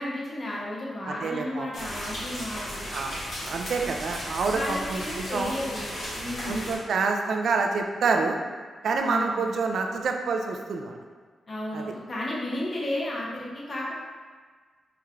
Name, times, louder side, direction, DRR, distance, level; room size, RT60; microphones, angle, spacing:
voice 1, 0.0-2.8 4.5-6.8 9.0-9.6 11.5-13.9, left 1 dB, 30° left, -5 dB, 0.9 m, -33 dB
voice 2, 1.1-1.9 2.9-3.2 3.5-5.5 6.5-8.4 8.8-11.0 11.7-11.8, right 4 dB, 65° right, 3 dB, 0.4 m, -27 dB
sound 1, 1.7-6.8, equal, 65° left, 1.5 m, -35 dB
5.7 x 3.2 x 2.4 m, 1.5 s
wide cardioid pair, 155°, 0 cm